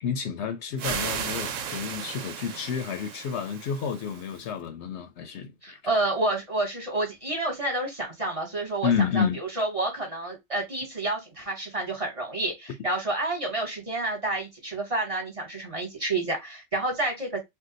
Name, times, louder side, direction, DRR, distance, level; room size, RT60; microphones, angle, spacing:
voice 1, 0.0-5.8 8.8-9.4, left 7 dB, 70° left, 0.8 m, -30 dB
sound 1, 0.8-4.4, right 7 dB, 85° right, 1.0 m, -35 dB
voice 2, 5.6-17.4, right 2 dB, 30° right, 1.0 m, -29 dB
2.7 x 2.2 x 3.8 m
omnidirectional pair, 1.3 m